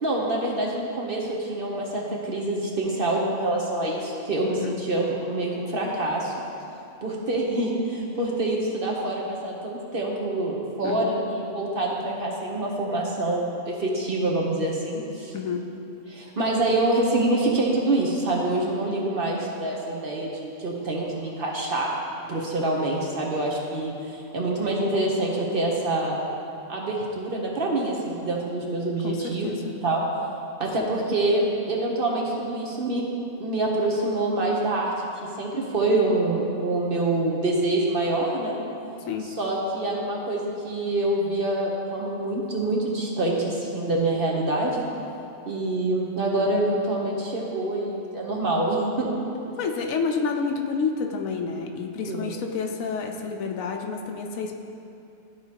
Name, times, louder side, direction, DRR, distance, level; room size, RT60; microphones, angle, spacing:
voice 1, 0.0-6.3 7.0-15.3 16.1-21.9 22.3-26.2 26.7-30.0 30.6-33.0 33.4-38.6 39.4-44.9 45.5-49.2 52.1-52.3, right 2 dB, 50° right, -2 dB, 0.9 m, -26 dB
voice 2, 4.5-4.8 10.8-11.1 15.3-15.7 29.0-29.7 30.8-30.9 39.1-39.3 49.6-54.6, left 5 dB, 80° left, 3 dB, 1.1 m, -29 dB
12.5 x 4.6 x 2.9 m, 2.7 s
omnidirectional pair, 1.4 m